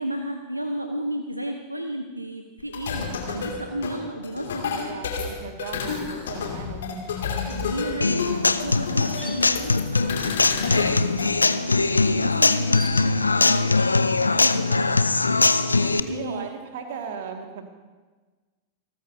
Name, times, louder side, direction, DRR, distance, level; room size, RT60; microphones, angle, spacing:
voice 1, 0.0-5.0 7.5-10.2 10.5-16.5, right 1 dB, 85° right, 5 dB, 0.8 m, -33 dB
sound 1, 2.6-11.3, left 6 dB, 60° left, 2.2 m, -31 dB
voice 2, 4.7-7.1 15.7-17.7, right 6 dB, 55° right, 5 dB, 1.9 m, -37 dB
sound 2, 5.2-13.5, left 2 dB, ahead, 2.9 m, -44 dB
Human voice / Acoustic guitar, 8.0-16.0, left 3 dB, 80° left, 0.5 m, -21 dB
28.0 x 13.5 x 2.7 m, 1.3 s
figure-of-eight pair, 90°, 0 cm